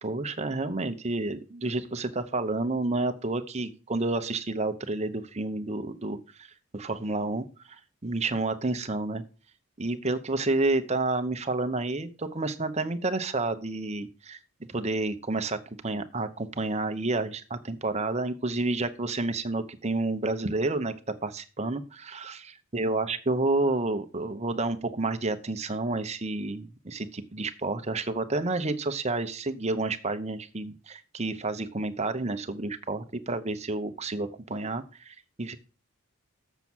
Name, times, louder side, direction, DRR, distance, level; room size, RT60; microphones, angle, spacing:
voice 1, 0.0-9.2 9.8-14.4 14.7-20.9 21.2-35.6, right 2 dB, 30° right, 9 dB, 0.8 m, -30 dB
7.2 x 6.8 x 6.1 m, 0.35 s
head